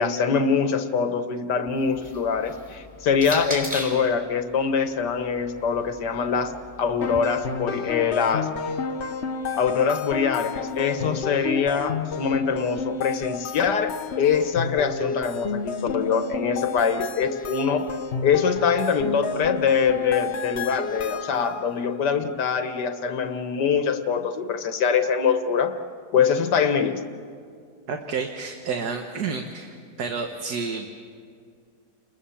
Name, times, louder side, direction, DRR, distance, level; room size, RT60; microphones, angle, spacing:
voice 1, 0.0-6.5 6.8-8.5 9.5-17.9 18.2-25.8 26.1-27.0, left 6 dB, 85° left, 8 dB, 1.8 m, -24 dB
sound 1, 1.7-4.1 5.1-7.2, left 1 dB, 5° right, 5.0 m, -38 dB
sound 2, 7.0-21.7, left 5 dB, 50° left, 1.0 m, -31 dB
voice 2, 27.9-29.7 30.0-30.9, right 5 dB, 70° right, 4 dB, 1.8 m, -30 dB
29.5 x 21.5 x 7.1 m, 2.2 s
omnidirectional pair, 1.8 m